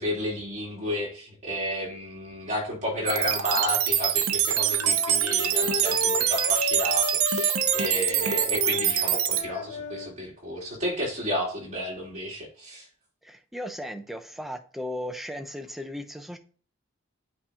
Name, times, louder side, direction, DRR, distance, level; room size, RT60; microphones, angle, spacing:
voice 1, 0.0-12.9, equal, 35° right, -3 dB, 3.1 m, -32 dB
sound 1, 3.1-9.4, right 10 dB, 75° right, 0.7 m, -25 dB
Wind instrument woodwind instrument, 4.6-10.1, left 4 dB, 35° left, 0.8 m, -33 dB
voice 2, 13.2-16.4, left 1 dB, ahead, 6 dB, 0.5 m, -36 dB
8.5 x 4.9 x 2.8 m, 0.41 s
head